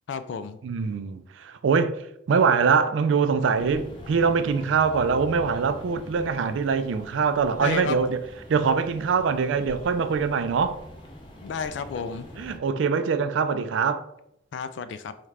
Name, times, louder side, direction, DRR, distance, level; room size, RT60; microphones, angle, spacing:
voice 1, 0.1-0.6 7.6-8.0 11.4-12.3 14.5-15.1, left 5 dB, 70° left, 0.3 m, -31 dB
voice 2, 0.6-2.0 2.3-8.2 8.5-10.8 12.4-14.1, right 5 dB, 80° right, 0.3 m, -23 dB
sound 1, 3.5-12.6, equal, 25° left, 0.6 m, -44 dB
4.1 x 2.4 x 3.3 m
head